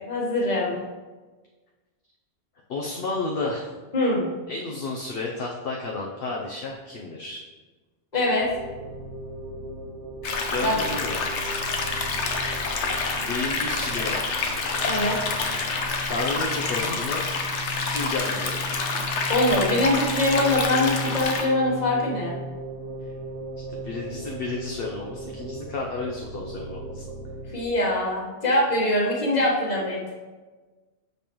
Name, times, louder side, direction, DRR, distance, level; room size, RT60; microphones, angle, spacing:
voice 1, 0.1-0.8 3.9-4.2 8.1-8.5 10.6-10.7 14.9-15.2 19.3-22.4 27.5-30.0, left 1 dB, 40° left, -4 dB, 1.4 m, -23 dB
voice 2, 2.7-3.7 4.5-7.4 10.5-11.5 13.3-14.2 16.0-17.3 17.9-18.8 23.7-27.0, left 3 dB, 60° left, -1 dB, 0.9 m, -31 dB
sound 1, 8.4-27.7, right 2 dB, 75° right, 0.9 m, -37 dB
sound 2, 10.2-21.4, left 4 dB, 80° left, 1.1 m, -28 dB
6.8 x 5.3 x 3.0 m, 1.3 s
omnidirectional pair, 1.2 m